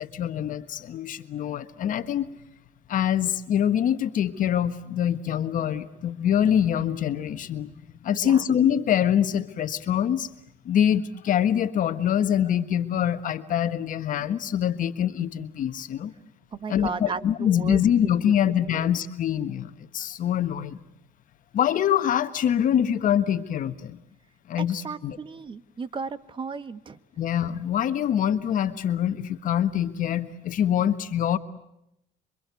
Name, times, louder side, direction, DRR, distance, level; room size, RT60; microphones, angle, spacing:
voice 1, 0.0-2.3 2.9-7.7 8.0-10.3 10.6-16.1 16.7-20.8 21.5-24.0 24.5-25.2 27.2-31.4, left 9 dB, 50° left, 10 dB, 1.5 m, -24 dB
voice 2, 8.1-8.5 16.5-18.3 18.7-18.9 24.8-27.0, right 5 dB, 30° right, 14 dB, 1.2 m, -35 dB
27.5 x 24.0 x 8.3 m, 0.81 s
cardioid pair, 135°, 17 cm